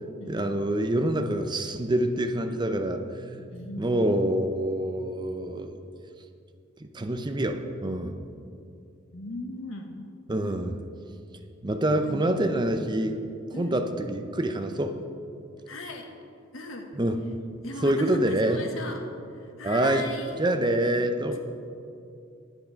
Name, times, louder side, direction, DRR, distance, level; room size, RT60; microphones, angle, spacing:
voice 1, 0.3-3.5 3.8-5.8 6.8-8.2 10.3-10.8 11.6-13.2 13.6-15.0 16.9-18.7 19.6-20.1 20.4-21.4, right 1 dB, 20° right, 7 dB, 0.6 m, -26 dB
voice 2, 3.5-3.9 9.1-9.9 12.0-12.6 13.5-13.8 15.7-16.1 16.5-16.9 17.6-19.0 19.4-20.4, left 2 dB, 85° left, 4 dB, 1.3 m, -38 dB
11.0 x 8.2 x 5.7 m, 2.5 s
head